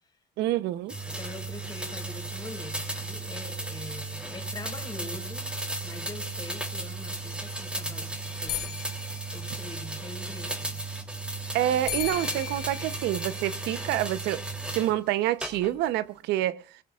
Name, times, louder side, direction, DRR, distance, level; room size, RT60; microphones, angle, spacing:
voice 1, 0.4-1.0 11.5-14.4 14.7-16.6, right 13 dB, 90° right, 0.9 m, -27 dB
sound 1, 0.9-14.9 15.4-16.0, right 2 dB, 5° right, 3.1 m, -35 dB
voice 2, 1.1-5.5 5.8-8.8 9.3-10.8, left 2 dB, 20° left, 4.7 m, -43 dB
sound 2, 8.2-10.2 11.9-14.3, left 13 dB, 80° left, 2.7 m, -38 dB
20.0 x 19.5 x 2.4 m
cardioid pair, 110°, 17 cm